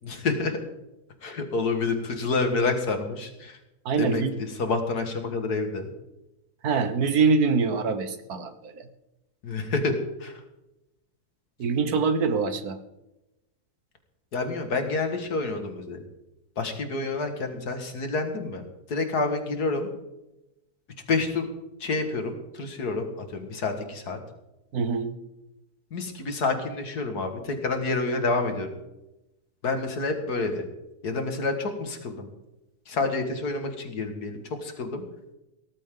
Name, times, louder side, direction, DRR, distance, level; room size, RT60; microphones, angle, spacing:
voice 1, 0.0-0.6 1.2-3.6 4.0-5.9 9.4-9.9 10.2-10.4 14.3-16.0 16.6-18.6 18.9-19.9 21.1-21.5 21.8-24.2 25.9-28.8 29.6-30.7 31.0-32.3 32.9-35.0, left 3 dB, 70° left, 6 dB, 2.4 m, -28 dB
voice 2, 3.8-4.3 6.6-8.7 11.6-12.8 24.7-25.1, right 5 dB, 70° right, 10 dB, 1.6 m, -24 dB
17.5 x 14.0 x 3.8 m, 0.94 s
omnidirectional pair, 1.7 m